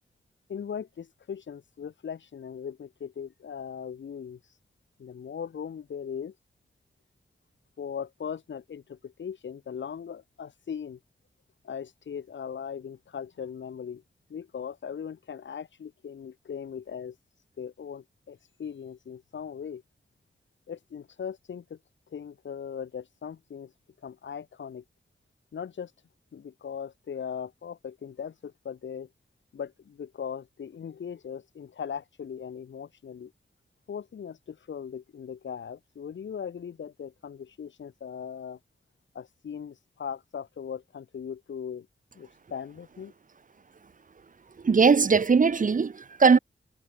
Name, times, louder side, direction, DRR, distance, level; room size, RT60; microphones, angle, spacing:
voice 1, 0.5-4.4 5.0-6.3 7.8-11.0 11.6-14.0 14.3-17.2 17.6-19.8 20.7-21.8 22.1-23.7 24.0-24.8 25.5-25.9 26.3-29.1 29.5-33.3 33.9-38.6 39.1-41.9 42.2-43.1, left 7 dB, 80° left, 0.8 m, -39 dB
voice 2, 44.6-46.4, right 5 dB, 45° right, 0.7 m, -20 dB
wide cardioid pair, 75°, 19 cm